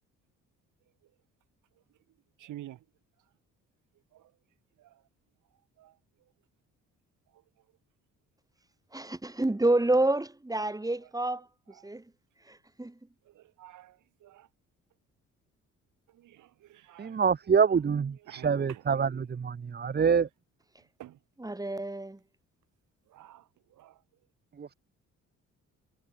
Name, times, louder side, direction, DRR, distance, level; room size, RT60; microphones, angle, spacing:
voice 1, 2.4-2.8 5.8-5.9 13.4-13.9 14.2-14.5 16.2-17.2 18.3-18.8 21.0-21.1 23.1-23.4 23.8-23.9, right 14 dB, 80° right, 4.7 m, -48 dB
voice 2, 8.9-11.5 11.8-12.0 12.5-13.0 21.4-22.2, right 2 dB, 10° right, 8.0 m, -28 dB
voice 3, 17.0-20.3 24.6-24.7, right 6 dB, 35° right, 1.2 m, -26 dB
cardioid pair, 90°, 30 cm